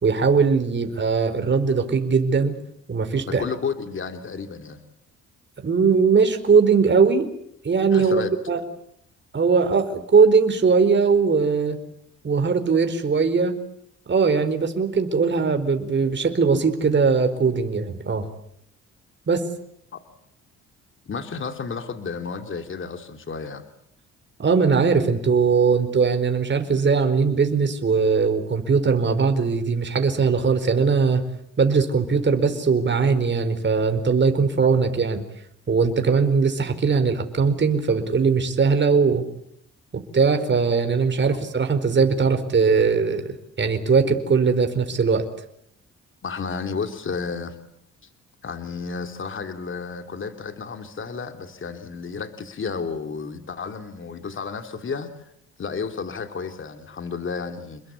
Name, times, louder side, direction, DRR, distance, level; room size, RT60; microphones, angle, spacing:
voice 1, 0.0-2.5 2.9-3.4 5.6-7.3 7.6-8.2 8.5-8.6 9.3-11.8 12.2-13.6 14.1-18.3 19.3-19.5 24.4-31.2 31.6-35.2 35.7-39.2 39.9-45.3, right 5 dB, 40° right, 7 dB, 4.7 m, -20 dB
voice 2, 3.3-4.8 7.9-8.3 19.9-20.0 21.1-23.6 46.2-47.6 48.4-55.3 55.6-57.8, left 5 dB, 40° left, 7 dB, 3.0 m, -32 dB
29.5 x 22.0 x 8.5 m, 0.73 s
cardioid pair, 90°, 30 cm